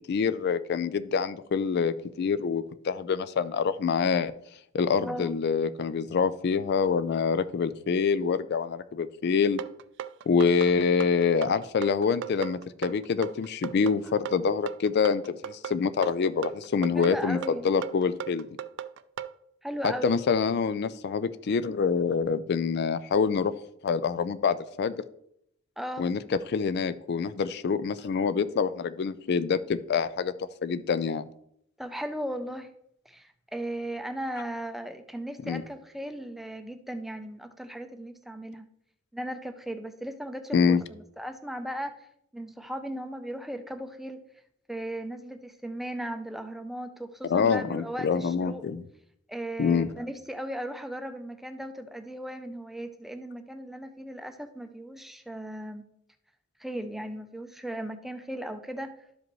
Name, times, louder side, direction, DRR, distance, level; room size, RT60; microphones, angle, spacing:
voice 1, 0.1-4.3 4.7-9.6 10.3-17.4 17.6-18.5 19.8-23.5 23.8-24.9 26.0-31.2 35.5-35.6 40.5-40.8 47.2-48.8 49.6-49.9, left 5 dB, 55° left, 14 dB, 0.4 m, -26 dB
voice 2, 5.0-5.4 14.0-14.1 16.9-17.7 19.6-20.2 25.8-26.1 31.8-32.7 33.1-38.7 39.1-41.9 42.3-44.2 44.7-48.6 49.3-55.8 56.6-58.9, right 1 dB, ahead, 7 dB, 0.5 m, -37 dB
sound 1, 9.6-19.3, right 9 dB, 65° right, 0.3 m, -37 dB
12.5 x 5.1 x 3.1 m, 0.73 s
head